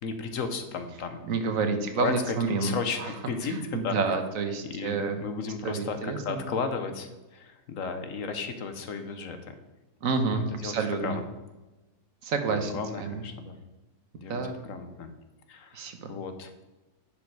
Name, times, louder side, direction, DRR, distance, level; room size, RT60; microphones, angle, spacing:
voice 1, 0.0-1.2 1.7-4.0 4.6-9.5 10.3-11.2 12.5-13.6 14.2-15.1 15.5-16.5, left 5 dB, 65° left, 8 dB, 1.2 m, -34 dB
voice 2, 1.3-3.1 3.5-5.2 5.6-6.5 10.0-11.2 12.2-12.7 13.0-13.2 14.3-14.6 15.7-16.1, right 4 dB, 65° right, 6 dB, 1.3 m, -29 dB
10.5 x 5.3 x 4.6 m, 1.1 s
omnidirectional pair, 1.6 m